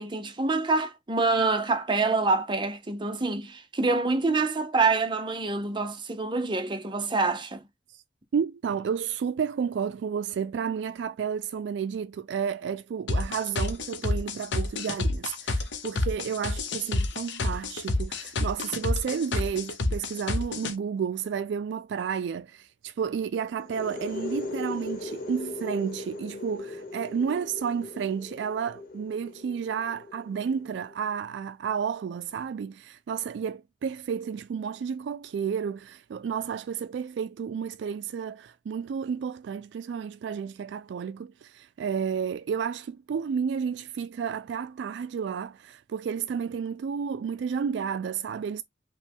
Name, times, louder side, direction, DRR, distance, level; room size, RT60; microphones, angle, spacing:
voice 1, 0.0-7.6, right 3 dB, 25° right, 0.7 m, -26 dB
voice 2, 8.3-48.6, right 7 dB, 70° right, 0.3 m, -31 dB
sound 1, 13.1-20.7, left 2 dB, 80° left, 0.9 m, -28 dB
sound 2, 23.6-31.1, left 3 dB, 50° left, 1.0 m, -39 dB
5.2 x 2.2 x 3.5 m
head